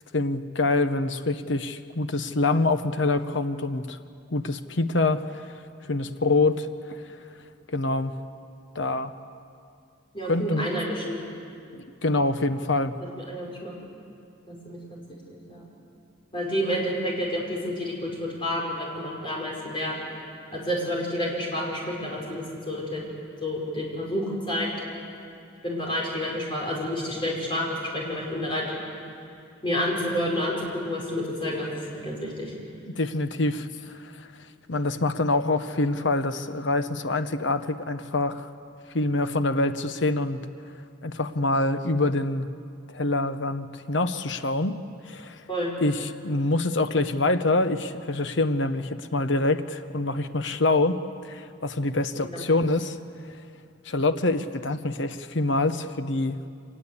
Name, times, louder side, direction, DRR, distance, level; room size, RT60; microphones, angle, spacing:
voice 1, 0.1-4.0 4.3-5.2 5.9-7.0 7.7-8.1 8.7-9.1 10.2-10.6 11.7-13.0 32.9-34.3 34.7-38.5 38.9-40.4 41.0-42.5 42.9-44.8 45.1-45.4 45.8-53.0 53.8-56.4, left 2 dB, 65° left, 10 dB, 0.9 m, -25 dB
voice 2, 10.1-11.2 13.0-13.7 14.5-15.6 16.3-20.0 20.5-23.0 23.4-24.7 25.6-28.8 29.6-32.5 45.5-45.7, equal, 25° left, -2 dB, 5.2 m, -29 dB
25.0 x 20.0 x 8.4 m, 2.5 s
head